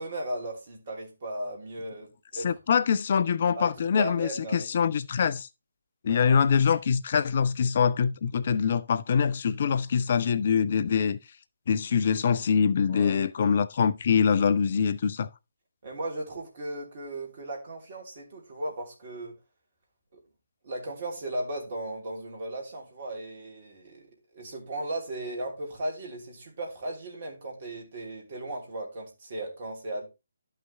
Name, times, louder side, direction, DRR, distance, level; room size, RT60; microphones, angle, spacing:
voice 1, 0.0-2.6 3.5-4.7 6.0-6.4 12.9-13.3 15.8-19.3 20.6-30.1, right 1 dB, 40° right, 3.1 m, -36 dB
voice 2, 2.3-5.5 6.0-11.2 11.7-15.3, left 6 dB, 40° left, 0.4 m, -24 dB
12.5 x 5.7 x 3.3 m
figure-of-eight pair, 145°, 0 cm